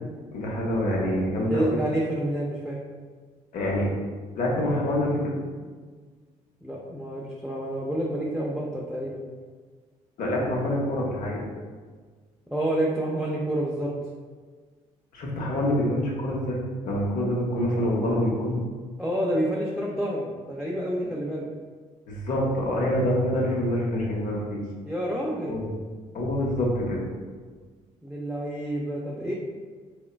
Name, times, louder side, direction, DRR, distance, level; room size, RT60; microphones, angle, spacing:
voice 1, 0.3-1.8 3.5-3.9 4.4-5.4 10.2-11.4 15.1-18.6 22.1-24.6 25.4-25.7 26.1-27.0, left 1 dB, 65° left, -2 dB, 0.7 m, -26 dB
voice 2, 1.5-2.8 6.6-9.2 12.5-13.9 19.0-21.4 24.8-25.6 28.0-29.3, right 1 dB, ahead, -4 dB, 0.4 m, -28 dB
3.0 x 2.2 x 2.2 m, 1.5 s
supercardioid pair, 60°, 15 cm